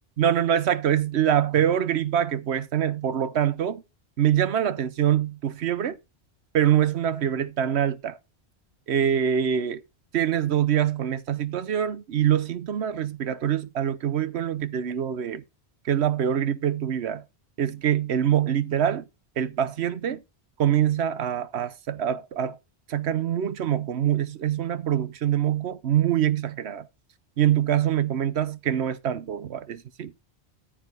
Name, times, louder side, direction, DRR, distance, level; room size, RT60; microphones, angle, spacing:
voice 1, 0.2-3.8 4.2-6.0 6.5-8.2 8.9-9.8 10.1-15.4 15.8-17.2 17.6-19.0 19.4-20.2 20.6-22.6 22.9-26.9 27.4-30.1, right 10 dB, 75° right, 1.0 m, -24 dB
14.0 x 4.8 x 4.7 m
omnidirectional pair, 1.1 m